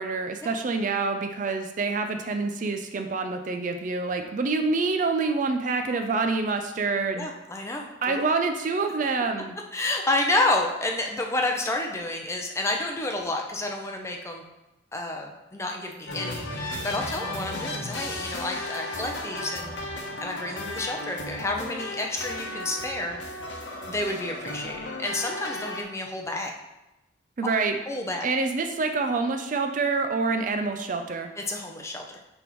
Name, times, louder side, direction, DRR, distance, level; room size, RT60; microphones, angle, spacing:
voice 1, 0.0-7.3 8.0-9.6 27.4-27.8 28.2-31.3, right 4 dB, 40° right, 6 dB, 0.4 m, -27 dB
voice 2, 7.1-8.3 9.7-14.4 14.9-19.8 20.2-23.2 23.9-26.5 27.9-28.3 31.4-32.0, left 2 dB, 15° left, 1 dB, 0.6 m, -30 dB
sound 1, 16.1-25.8, left 1 dB, 70° left, 0.9 m, -35 dB
9.7 x 3.5 x 3.0 m, 0.97 s
head